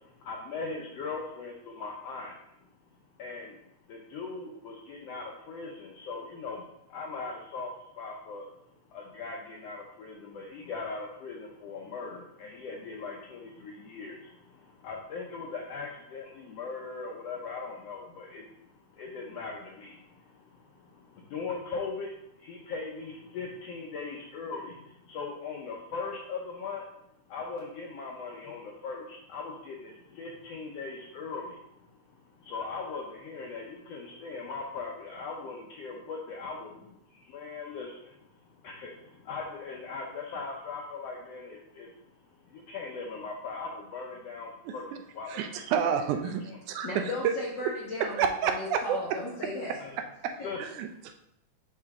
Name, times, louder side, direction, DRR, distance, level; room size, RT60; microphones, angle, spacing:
voice 1, 0.0-2.3 3.2-3.6 3.9-8.5 8.9-18.5 18.9-26.8 27.3-31.6 32.4-38.2 38.5-41.9 42.4-45.9 49.8-50.0 50.4-50.6, left 4 dB, 75° left, -1 dB, 1.4 m, -39 dB
voice 2, 45.3-46.9 47.2-47.3 48.2-49.0 50.2-50.3 50.6-51.1, right 7 dB, 80° right, 6 dB, 1.9 m, -29 dB
voice 3, 46.8-49.8 50.4-50.5, left 2 dB, 55° left, -5 dB, 1.3 m, -36 dB
6.6 x 5.7 x 3.5 m, 0.79 s
omnidirectional pair, 3.6 m